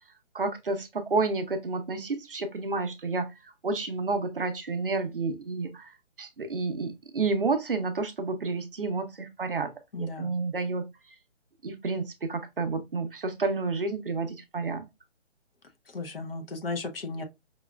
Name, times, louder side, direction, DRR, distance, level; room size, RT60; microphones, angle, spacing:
voice 1, 0.3-9.7 10.0-10.9 11.6-14.9, right 3 dB, 50° right, 0.6 m, -30 dB
voice 2, 9.9-10.4 15.9-17.2, left 3 dB, 50° left, 0.7 m, -35 dB
5.1 x 2.3 x 2.2 m
hypercardioid pair, 180°, 36 cm